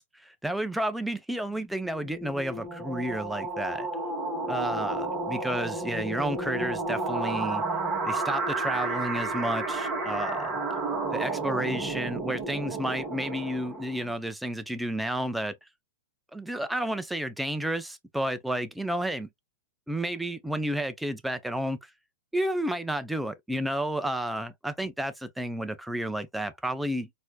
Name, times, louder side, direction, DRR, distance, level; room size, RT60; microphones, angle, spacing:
voice 1, 0.0-3.9 4.5-7.6 8.0-10.5 11.1-15.6 16.3-19.3 19.9-21.9 22.3-27.1, right 1 dB, 5° right, 0.5 m, -31 dB
sound 1, 1.6-14.2, right 3 dB, 20° right, 1.7 m, -32 dB
4.2 x 2.7 x 2.2 m
hypercardioid pair, 125°, 0 cm